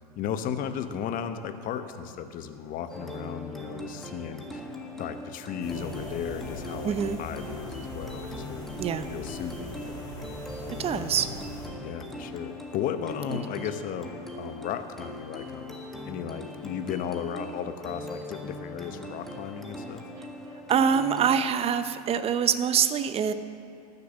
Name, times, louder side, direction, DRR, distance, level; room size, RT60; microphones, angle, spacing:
voice 1, 0.1-4.6 4.9-8.8 9.1-11.3 11.6-15.8 16.0-20.0, left 8 dB, 45° left, 9 dB, 0.9 m, -35 dB
sound 1, 2.9-21.5, left 1 dB, ahead, 1.5 m, -41 dB
sound 2, 5.6-11.7, left 1 dB, 20° left, 3.2 m, -41 dB
voice 2, 6.8-7.2 8.8-9.1 10.8-11.3 13.3-13.4 20.7-23.3, right 7 dB, 30° right, 11 dB, 0.7 m, -25 dB
12.5 x 6.8 x 7.0 m, 2.4 s
hypercardioid pair, 90°, 20 cm